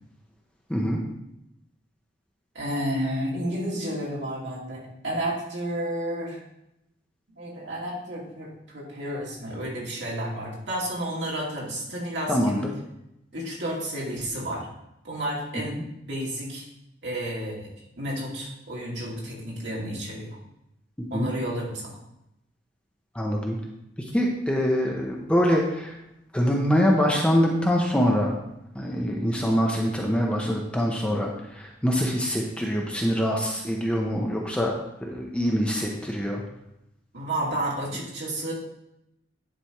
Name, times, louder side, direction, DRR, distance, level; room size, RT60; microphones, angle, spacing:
voice 1, 2.5-6.4 7.3-12.7 13.3-14.7 15.0-15.8 16.1-16.6 17.0-17.7 18.0-20.4 21.1-22.0 37.1-38.5, right 1 dB, 65° right, -5 dB, 2.4 m, -31 dB
voice 2, 12.3-12.6 21.1-21.3 23.1-23.6 24.1-25.9 26.3-28.3 28.7-34.7 35.0-36.4, equal, 5° left, -1 dB, 0.7 m, -24 dB
10.0 x 3.4 x 4.5 m, 0.85 s
head